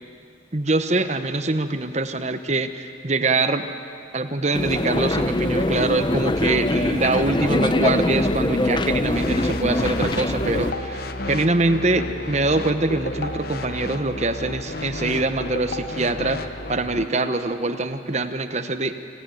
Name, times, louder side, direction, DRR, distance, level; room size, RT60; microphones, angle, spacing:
voice 1, 0.5-3.7 4.1-11.0 11.3-16.4 16.7-18.9, right 2 dB, 35° right, 9 dB, 1.0 m, -24 dB
sound 1, 4.5-10.7, left 1 dB, 25° left, 0.7 m, -23 dB
sound 2, 9.1-17.1, left 1 dB, 50° left, 1.0 m, -31 dB
26.0 x 17.0 x 9.2 m, 2.4 s
head